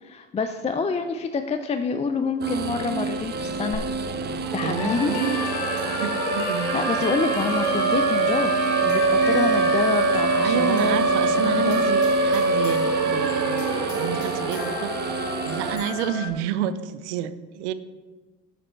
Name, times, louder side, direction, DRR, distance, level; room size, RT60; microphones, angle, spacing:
voice 1, 0.0-3.9 4.5-5.2 6.7-11.8, left 5 dB, 20° left, 8 dB, 0.4 m, -27 dB
sound 1, 2.4-15.8, right 4 dB, 30° right, 0.7 m, -31 dB
Siren, 3.7-3.8 4.1-16.2, right 3 dB, 60° right, 1.4 m, -24 dB
voice 2, 4.6-5.4 5.9-6.7 10.4-17.7, right 9 dB, 90° right, 13 dB, 0.6 m, -30 dB
sound 2, 4.8-16.3, left 5 dB, 75° left, 1.0 m, -33 dB
6.6 x 6.5 x 4.5 m, 1.3 s
supercardioid pair, 85°, 33 cm